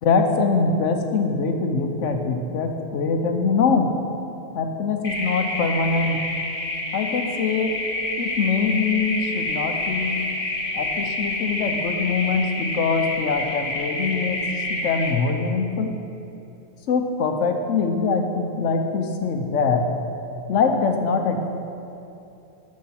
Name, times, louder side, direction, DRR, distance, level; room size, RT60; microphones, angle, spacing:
voice 1, 0.0-3.9 4.5-6.2 6.9-7.7 8.2-10.2 10.7-14.4 14.7-15.9 16.9-19.9 20.5-21.5, left 4 dB, 75° left, 5 dB, 1.1 m, -23 dB
sound 1, 5.0-15.1, left 2 dB, 45° left, 1.4 m, -28 dB
11.5 x 4.7 x 5.9 m, 2.8 s
omnidirectional pair, 1.3 m